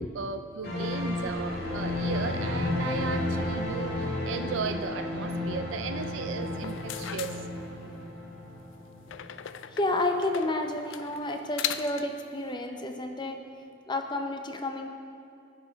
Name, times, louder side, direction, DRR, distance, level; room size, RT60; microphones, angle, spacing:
voice 1, 0.0-7.3, right 5 dB, 75° right, 8 dB, 0.4 m, -36 dB
sound 1, 0.6-9.8 10.1-10.2, left 2 dB, 50° left, 1.7 m, -32 dB
sound 2, 6.5-8.1 9.1-12.2, left 10 dB, 75° left, 0.4 m, -38 dB
voice 2, 9.7-13.4 13.9-14.9, left 2 dB, 25° left, 5 dB, 0.7 m, -30 dB
12.0 x 5.7 x 5.2 m, 2.6 s
head